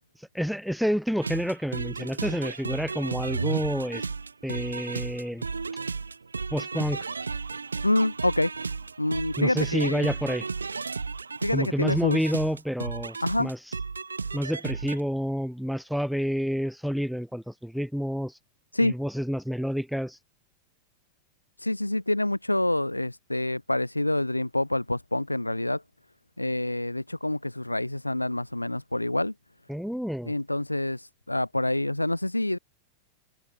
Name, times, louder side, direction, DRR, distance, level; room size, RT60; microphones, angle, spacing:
voice 1, 0.2-4.0 4.4-5.5 6.5-7.1 9.4-10.5 11.5-13.6 14.3-18.4 18.8-20.2 29.7-30.3, equal, ahead, 2.2 m, -29 dB
sound 1, 1.2-15.0, right 4 dB, 75° right, 3.9 m, -34 dB
voice 2, 7.8-8.5 9.0-10.1 11.4-12.3 13.2-13.5 18.7-18.9 21.6-25.8 26.4-29.3 30.3-32.6, left 1 dB, 85° left, 2.6 m, -27 dB
figure-of-eight pair, 90°, 0 cm